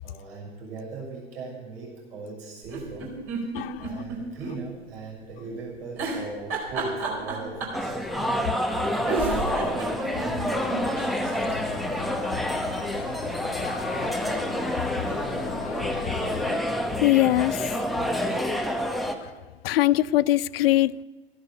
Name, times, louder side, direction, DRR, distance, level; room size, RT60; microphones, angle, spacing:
voice 1, 0.0-3.1 3.8-7.9 8.7-11.8 14.9-15.2, right 4 dB, 65° right, 6.4 m, -39 dB
sound 1, 2.6-4.5 4.9-5.0 6.0-7.8 8.7-8.8 9.1-10.8 11.2-11.3 11.5-11.6, right 3 dB, 40° right, 4.5 m, -31 dB
voice 2, 3.5-3.9 8.2-8.3 15.3-15.4 17.0-17.7 19.6-20.9, left 15 dB, 65° left, 0.5 m, -22 dB
sound 2, 7.7-19.2, left 1 dB, ahead, 1.3 m, -28 dB
sound 3, 11.3-16.6, left 6 dB, 85° left, 0.9 m, -37 dB
14.5 x 11.0 x 6.9 m
figure-of-eight pair, 85°, 32 cm